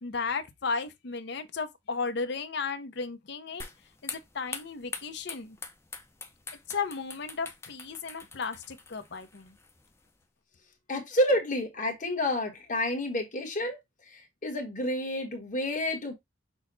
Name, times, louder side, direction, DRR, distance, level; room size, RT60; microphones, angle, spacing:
voice 1, 0.0-3.6 4.0-5.6 6.7-9.5, left 4 dB, 60° left, 0.7 m, -34 dB
sound 1, 3.6-10.2, left 4 dB, 15° left, 0.6 m, -44 dB
voice 2, 10.9-13.8 14.1-16.1, left 1 dB, 40° left, 1.3 m, -29 dB
6.1 x 2.2 x 3.9 m
head